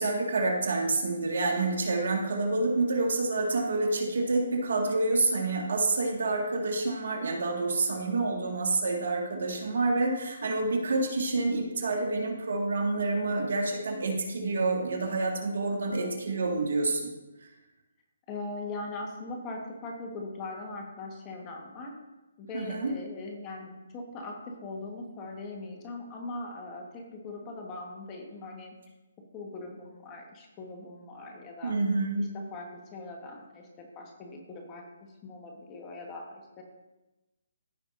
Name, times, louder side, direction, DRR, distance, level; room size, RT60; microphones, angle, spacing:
voice 1, 0.0-17.1 22.5-22.9 31.6-32.2, right 3 dB, 70° right, 1 dB, 1.8 m, -28 dB
voice 2, 18.3-21.9 22.4-28.8 29.3-31.8 32.2-36.6, left 2 dB, 25° left, 1 dB, 1.4 m, -40 dB
14.5 x 5.6 x 2.6 m, 1.1 s
hypercardioid pair, 150°, 0 cm